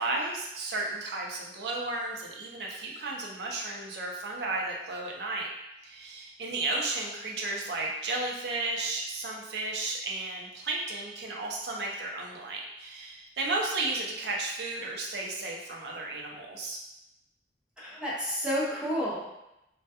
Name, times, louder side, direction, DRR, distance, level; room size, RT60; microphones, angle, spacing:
voice 1, 0.0-5.5 5.8-16.8, right 2 dB, 65° right, -1 dB, 0.5 m, -33 dB
voice 2, 17.8-19.4, equal, 5° right, -8 dB, 0.6 m, -31 dB
2.2 x 2.1 x 2.7 m, 0.90 s
head